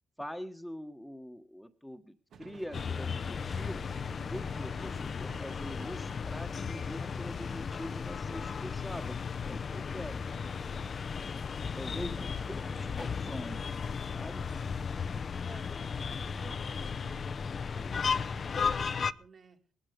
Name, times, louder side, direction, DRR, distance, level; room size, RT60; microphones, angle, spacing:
voice 1, 0.2-3.9 4.3-10.2 11.6-13.7 14.1-14.4, equal, ahead, 6 dB, 1.3 m, -44 dB
sound 1, 2.3-7.7, right 6 dB, 65° right, 1.5 m, -55 dB
sound 2, 2.7-19.1, left 6 dB, 45° left, 0.7 m, -35 dB
voice 2, 10.9-11.5 12.3-13.1 14.5-14.8 15.4-19.6, right 5 dB, 50° right, 3 dB, 2.8 m, -56 dB
18.5 x 12.5 x 5.2 m, 0.41 s
cardioid pair, 90°, 0 cm